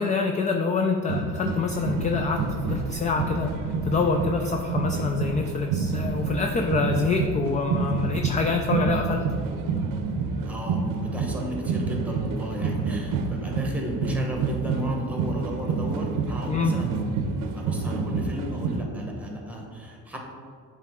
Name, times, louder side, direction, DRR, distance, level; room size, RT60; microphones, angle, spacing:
voice 1, 0.0-9.2 16.5-16.7, left 4 dB, 25° left, 3 dB, 0.3 m, -26 dB
sound 1, 1.1-18.8, right 4 dB, 80° right, 0.7 m, -28 dB
sound 2, 1.6-9.2, left 1 dB, 65° left, 0.9 m, -44 dB
voice 2, 10.4-17.3 17.5-20.2, equal, 5° right, 0 dB, 1.1 m, -34 dB
8.5 x 3.2 x 3.6 m, 2.2 s
cardioid pair, 110°, 33 cm